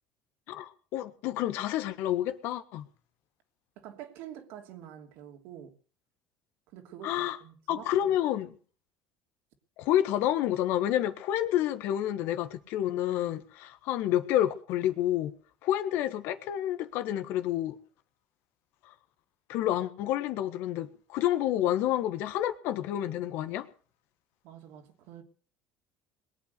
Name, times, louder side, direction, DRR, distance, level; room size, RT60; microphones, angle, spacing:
voice 1, 0.5-2.9 7.0-7.4 7.7-8.5 9.8-15.3 15.6-17.8 19.5-23.7, left 12 dB, 70° left, 1.5 m, -29 dB
voice 2, 3.8-5.7 6.7-8.1 24.4-25.2, right 10 dB, 70° right, 2.9 m, -47 dB
21.5 x 8.7 x 6.8 m
supercardioid pair, 80°, 4 cm